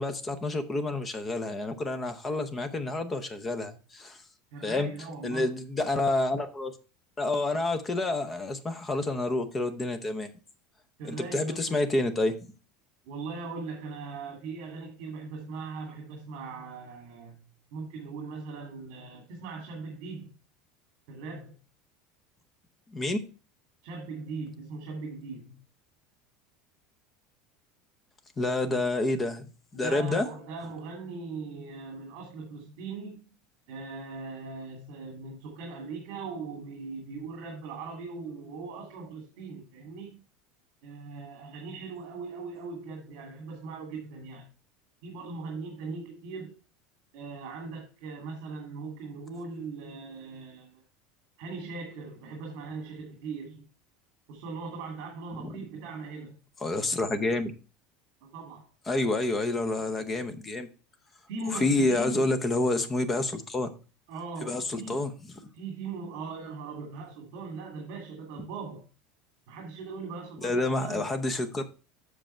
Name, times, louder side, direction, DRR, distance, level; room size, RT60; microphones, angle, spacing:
voice 1, 0.0-4.2 4.6-4.9 5.2-6.7 7.2-10.3 11.1-12.4 22.9-23.2 28.4-29.5 29.7-30.3 55.4-55.6 56.6-57.5 58.9-60.7 61.5-63.7 64.4-65.1 70.4-71.6, left 2 dB, 15° left, 0.8 m, -28 dB
voice 2, 4.5-5.4 11.0-12.0 13.0-17.4 17.7-20.4 21.1-21.6 23.8-25.6 29.7-33.3 33.7-40.2 40.8-44.5 45.0-46.5 47.1-50.8 51.4-53.7 54.3-56.4 58.3-58.7 61.3-62.3 64.1-65.1 65.5-68.9 69.5-71.1, right 4 dB, 55° right, 2.3 m, -40 dB
7.7 x 6.2 x 4.4 m
cardioid pair, 170°, 0 cm